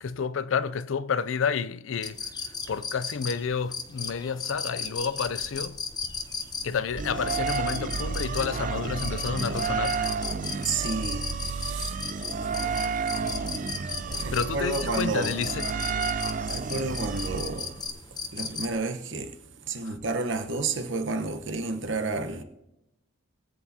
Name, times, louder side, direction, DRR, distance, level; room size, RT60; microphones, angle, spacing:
voice 1, 0.0-2.3 2.7-5.8 6.6-10.1 14.3-15.8 19.8-19.9, left 6 dB, 70° left, 0.4 m, -30 dB
sound 1, 2.0-18.7, left 5 dB, 20° left, 0.7 m, -36 dB
sound 2, 7.0-17.9, right 5 dB, 35° right, 0.4 m, -31 dB
voice 2, 10.6-11.9 14.1-15.3 16.5-17.7 18.3-19.4 19.7-22.4, right 3 dB, 60° right, 1.0 m, -31 dB
21.5 x 8.1 x 2.8 m
head